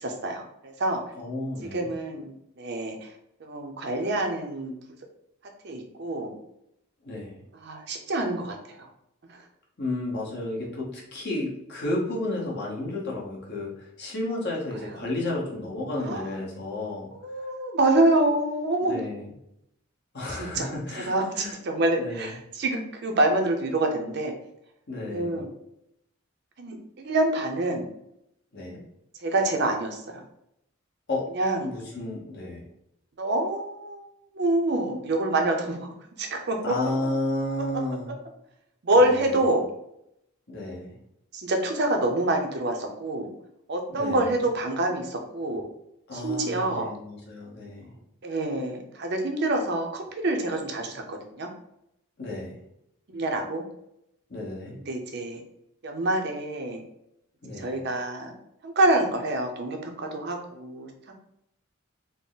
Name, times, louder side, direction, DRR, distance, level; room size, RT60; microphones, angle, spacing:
voice 1, 0.0-1.0 1.7-3.1 3.4-4.7 5.6-6.3 7.6-8.9 9.3-9.4 16.0-16.3 17.2-19.0 20.3-20.7 21.1-24.3 25.1-25.5 26.6-27.9 29.2-30.2 31.3-31.7 33.2-34.0 34.3-35.8 36.2-36.7 38.8-39.6 41.3-43.3 43.7-45.6 46.1-46.9 48.2-51.5 53.1-53.6 54.9-55.4 55.8-56.8 57.6-58.3 58.6-61.1, right 2 dB, 50° right, 3 dB, 0.5 m, -26 dB
voice 2, 1.2-1.9 7.0-7.4 9.8-17.1 18.3-18.4 18.8-19.3 20.1-21.5 22.0-22.3 24.9-25.4 28.5-28.8 31.1-31.2 31.6-32.6 36.6-38.1 38.9-39.3 40.5-41.0 43.9-44.3 46.1-47.9 52.2-52.6 54.3-54.8 57.4-57.8, left 2 dB, 50° left, -4 dB, 1.1 m, -32 dB
3.7 x 2.0 x 3.9 m, 0.79 s
head